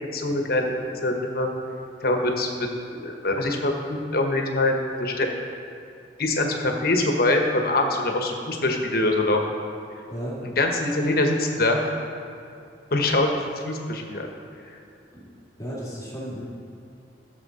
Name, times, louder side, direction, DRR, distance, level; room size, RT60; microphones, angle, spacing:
voice 1, 0.1-0.7 1.0-1.5 2.0-2.7 3.0-5.3 6.2-9.4 10.6-11.9 12.9-14.3, left 2 dB, 55° left, 2 dB, 1.2 m, -24 dB
voice 2, 10.1-10.4 15.1-15.3 15.6-16.4, equal, 20° left, -8 dB, 2.2 m, -34 dB
15.5 x 7.0 x 4.2 m, 2.5 s
head